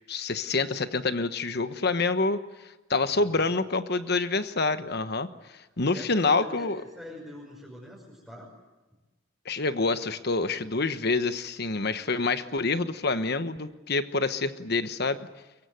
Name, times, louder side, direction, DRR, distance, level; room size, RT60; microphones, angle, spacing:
voice 1, 0.1-2.4 2.9-5.3 5.8-6.8 9.4-15.2, left 3 dB, 50° left, 11 dB, 1.2 m, -27 dB
voice 2, 3.1-3.5 5.9-8.5, left 1 dB, ahead, -5 dB, 5.6 m, -44 dB
23.5 x 23.0 x 9.3 m, 1.1 s
head